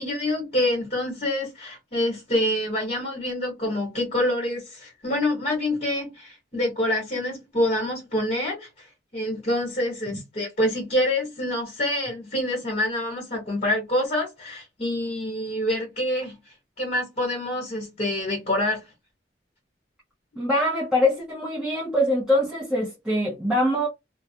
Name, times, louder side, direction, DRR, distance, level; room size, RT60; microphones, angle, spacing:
voice 1, 0.0-8.9 9.1-16.4 16.8-18.8, left 1 dB, 40° left, 1.2 m, -26 dB
voice 2, 20.4-23.9, left 1 dB, 5° right, 0.7 m, -23 dB
2.3 x 2.1 x 2.7 m
head